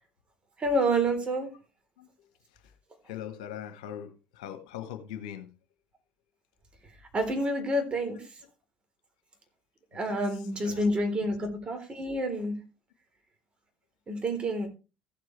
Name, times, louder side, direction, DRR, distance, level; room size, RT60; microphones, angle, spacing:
voice 1, 0.6-1.5 7.1-8.2 9.9-12.5 14.1-14.7, right 1 dB, 30° right, 3.6 m, -28 dB
voice 2, 2.0-2.3 3.0-5.5 8.1-8.3 9.9-10.9 11.2-11.3, left 10 dB, 75° left, 1.2 m, -42 dB
15.0 x 7.6 x 3.3 m
hypercardioid pair, 65°, 4 cm